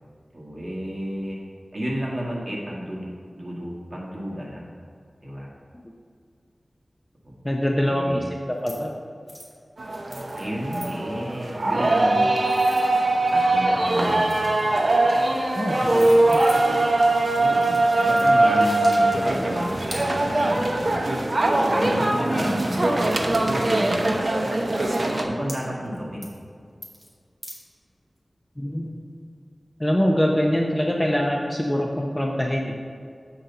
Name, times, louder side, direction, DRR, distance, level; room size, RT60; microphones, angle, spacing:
voice 1, 0.3-1.4 1.7-3.1 3.3-4.7 5.2-5.5 7.2-7.4 7.8-8.3 10.3-12.4 13.3-14.5 15.8-16.6 17.4-21.0 21.7-23.3 23.7-24.2 25.2-26.3, equal, 30° right, -4 dB, 1.8 m, -32 dB
voice 2, 7.4-8.2 8.6-8.9 15.5-16.4 22.4-22.5 28.6-28.9 29.8-32.7, equal, 15° left, 0 dB, 0.6 m, -24 dB
sound 1, 8.6-8.9 9.3-9.6 10.1-10.5 10.7-10.9 12.0-13.4 13.8-14.7 15.5-15.6 15.8-16.9 17.6-18.3 18.8-19.0 19.9-20.1 21.6-21.7 22.0-23.1 23.8-23.9 24.3-24.4 24.7-25.0 25.5-26.0 26.2-26.4 26.8-27.1 27.4-27.6, equal, 10° right, 1.4 m, -42 dB
sound 2, 9.8-25.3, right 2 dB, 50° right, 0.7 m, -21 dB
7.7 x 4.0 x 5.6 m, 2.2 s
wide cardioid pair, 80°, 0 cm